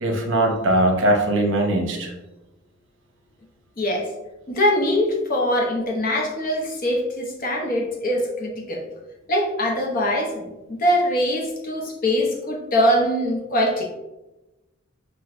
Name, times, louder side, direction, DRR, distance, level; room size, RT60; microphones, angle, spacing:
voice 1, 0.0-2.1, right 1 dB, 65° right, 1 dB, 0.8 m, -20 dB
voice 2, 3.8-4.1 4.5-8.8 9.3-13.9, equal, 45° left, 0 dB, 0.8 m, -22 dB
6.0 x 2.3 x 2.5 m, 1.0 s
head